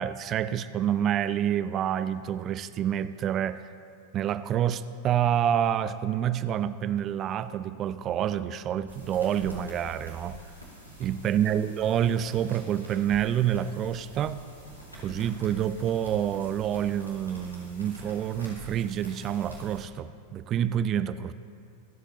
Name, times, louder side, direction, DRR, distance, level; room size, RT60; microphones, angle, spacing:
voice 1, 0.0-3.6 4.1-10.4 11.0-14.4 15.0-21.3, right 10 dB, 30° right, 14 dB, 0.4 m, -28 dB
sound 1, 8.9-19.8, right 2 dB, 90° left, 2.8 m, -46 dB
24.0 x 8.2 x 2.8 m, 2.3 s
figure-of-eight pair, 90°, 0 cm